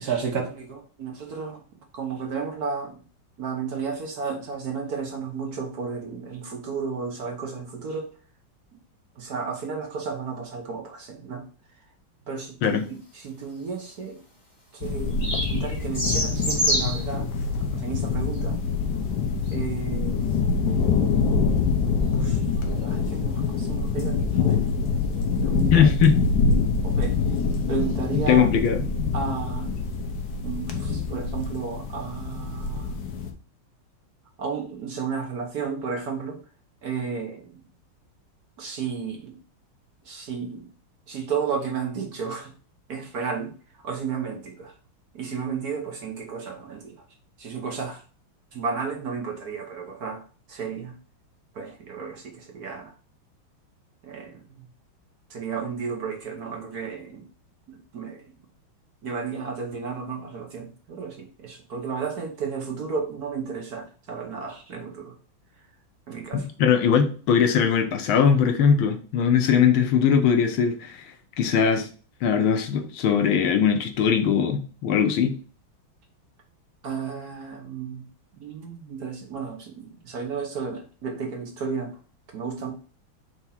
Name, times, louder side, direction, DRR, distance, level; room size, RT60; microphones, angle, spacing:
voice 1, 0.0-1.6 1.9-2.9 3.4-8.1 9.2-11.4 12.3-14.2 14.8-17.2 17.7-18.6 19.5-20.6 22.1-22.4 22.7-24.6 25.1-25.9 26.8-27.2 27.7-28.5 29.1-29.7 30.4-32.9 34.4-36.4 36.8-37.5 38.6-39.4 40.1-40.6 41.1-42.5 42.9-43.5 43.8-44.7 45.1-46.9 47.4-48.0 48.5-50.2 50.5-50.9 51.6-52.9 54.0-54.6 55.3-57.2 57.7-58.2 59.0-65.1 66.1-66.5 76.8-78.0 78.4-81.9 82.3-82.7, right 5 dB, 55° right, 2 dB, 1.3 m, -33 dB
sound 1, 14.8-33.3, left 4 dB, 60° left, 1.3 m, -25 dB
sound 2, 14.9-17.1 18.2-18.4 19.4-19.6 22.4-22.5 27.4-27.5 27.9-28.2, equal, 20° left, 2.5 m, -27 dB
voice 2, 25.7-26.2 28.3-28.8 66.3-71.0 71.4-71.9 72.2-75.4, left 7 dB, 80° left, 6 dB, 1.7 m, -20 dB
4.7 x 3.6 x 5.6 m, 0.38 s
omnidirectional pair, 2.3 m